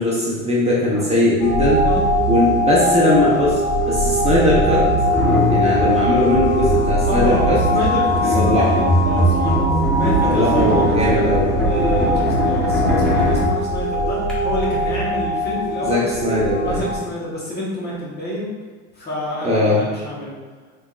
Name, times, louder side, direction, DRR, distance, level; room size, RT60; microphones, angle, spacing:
voice 1, 0.0-1.8 2.3-3.6 3.9-4.8 5.5-7.6 8.3-8.8 10.2-11.5 15.8-16.8 19.4-19.8, left 1 dB, 20° right, -6 dB, 1.0 m, -19 dB
sound 1, 1.4-17.0, equal, 55° left, 1.3 m, -20 dB
sound 2, 2.7-2.8 3.7-14.3, equal, ahead, 1.3 m, -23 dB
voice 2, 7.0-11.3 11.6-16.1 16.6-18.5 18.9-20.3, left 1 dB, 30° left, -5 dB, 1.3 m, -28 dB
3.6 x 3.4 x 2.4 m, 1.5 s
supercardioid pair, 90°, 36 cm